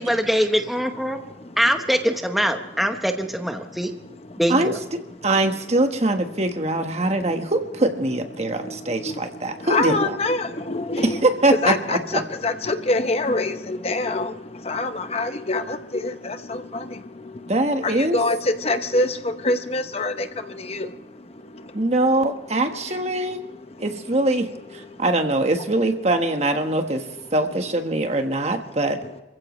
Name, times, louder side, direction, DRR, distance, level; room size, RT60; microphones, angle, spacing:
voice 1, 0.0-1.2 1.6-3.9 4.4-4.8, equal, ahead, 5 dB, 0.9 m, -23 dB
voice 2, 3.6-4.4 6.9-7.3 8.4-21.9 22.8-24.2 24.8-25.0 29.0-29.1, left 2 dB, 35° left, 9 dB, 0.8 m, -27 dB
voice 3, 5.2-10.1 11.0-12.2 17.5-18.2 21.7-23.4 23.8-27.1 27.3-29.0, right 2 dB, 35° right, 6 dB, 1.4 m, -22 dB
26.0 x 15.5 x 3.2 m, 1.1 s
head